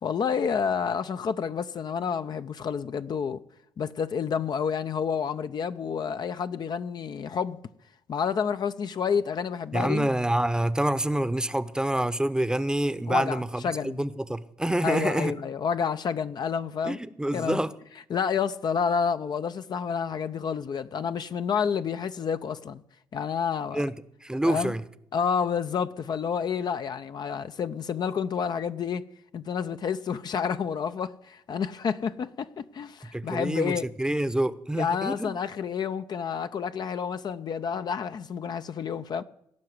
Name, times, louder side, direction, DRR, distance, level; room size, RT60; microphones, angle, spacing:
voice 1, 0.0-3.4 3.8-7.6 8.1-10.1 13.1-14.0 14.8-17.0 17.3-17.6 18.1-22.8 23.1-23.8 24.4-24.7 25.1-29.0 29.3-33.8 34.8-39.2, left 6 dB, 50° left, 0.6 m, -29 dB
voice 2, 9.7-15.3 16.8-17.7 23.7-23.9 24.2-24.8 33.1-35.4, right 1 dB, 10° right, 0.8 m, -27 dB
17.0 x 5.7 x 9.6 m
supercardioid pair, 65°, 9 cm